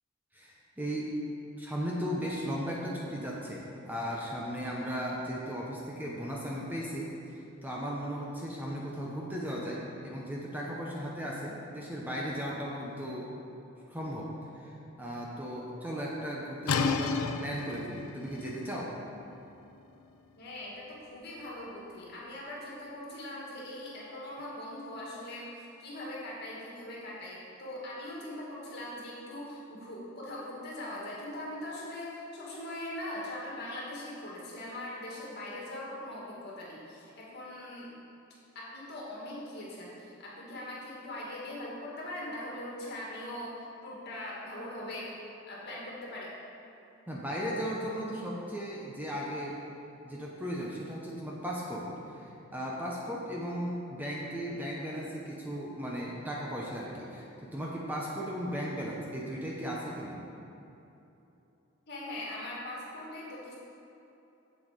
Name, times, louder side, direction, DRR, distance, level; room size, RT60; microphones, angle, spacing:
voice 1, 0.3-1.1 1.6-13.3 13.9-14.7 15.0-18.9 47.1-49.6 50.0-60.2, equal, 10° right, -4 dB, 0.8 m, -36 dB
sound 1, 16.7-22.3, left 5 dB, 85° left, 0.5 m, -35 dB
voice 2, 20.4-37.9 38.5-45.1 45.5-46.3 61.9-63.6, left 1 dB, 50° left, -5 dB, 2.1 m, -41 dB
7.6 x 7.4 x 5.1 m, 2.9 s
head